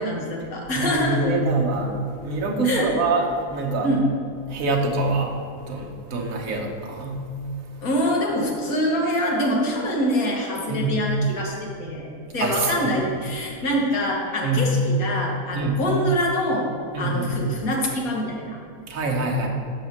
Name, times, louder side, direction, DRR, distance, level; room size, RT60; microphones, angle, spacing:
voice 1, 0.0-1.3 2.6-2.9 3.8-4.0 7.8-12.1 12.3-16.7 17.0-18.6, equal, 85° left, -2 dB, 1.8 m, -25 dB
voice 2, 0.7-1.9 2.2-3.9 4.5-7.3 7.7-7.8 10.7-11.0 12.4-13.0 14.4-14.7 15.5-15.8 16.9-17.4 18.9-19.5, right 2 dB, 75° right, 1 dB, 1.5 m, -25 dB
6.2 x 5.7 x 6.6 m, 2.4 s
omnidirectional pair, 1.5 m